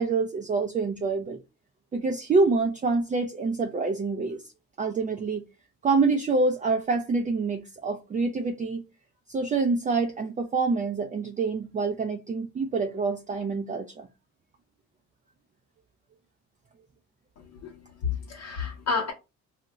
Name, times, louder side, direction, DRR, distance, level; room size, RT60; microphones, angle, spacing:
voice 1, 0.0-1.4 1.9-4.4 4.8-5.4 5.8-8.8 9.3-14.1, right 4 dB, 25° right, 0.4 m, -26 dB
voice 2, 17.4-19.1, left 5 dB, 60° left, 0.8 m, -31 dB
2.3 x 2.1 x 3.9 m
cardioid pair, 90°, 30 cm